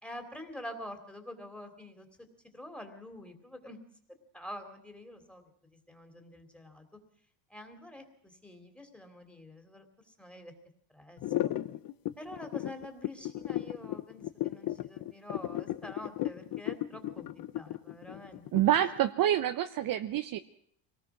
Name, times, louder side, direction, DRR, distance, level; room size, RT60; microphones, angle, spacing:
voice 1, 0.0-2.1 2.5-3.8 4.3-5.5 5.9-6.8 7.5-10.5 10.9-11.2 12.2-18.4, left 1 dB, ahead, 6 dB, 3.0 m, -46 dB
sound 1, 11.2-19.0, left 14 dB, 45° left, 1.0 m, -35 dB
voice 2, 18.5-20.4, right 12 dB, 40° right, 9 dB, 0.8 m, -27 dB
25.0 x 18.5 x 6.2 m, 0.63 s
cardioid pair, 135°, 49 cm